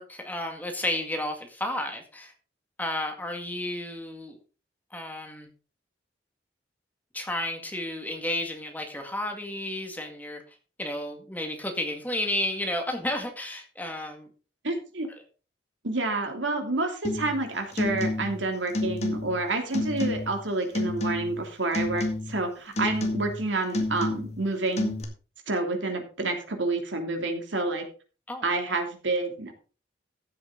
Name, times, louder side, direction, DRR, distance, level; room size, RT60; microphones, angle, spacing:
voice 1, 0.0-2.3 2.8-4.4 4.9-5.5 7.1-10.4 10.8-14.3 28.3-28.4, left 1 dB, 10° left, 4 dB, 2.0 m, -32 dB
voice 2, 14.6-15.1 15.8-25.0 25.5-27.8 28.4-29.6, right 2 dB, 85° right, 4 dB, 2.9 m, -29 dB
sound 1, 17.0-17.4 17.7-18.4 18.7-19.4 19.7-20.4 20.7-21.4 21.7-22.4 22.8-23.4 23.7-24.4 24.8-25.0, left 2 dB, 35° left, 2.1 m, -30 dB
14.5 x 8.1 x 3.9 m, 0.36 s
head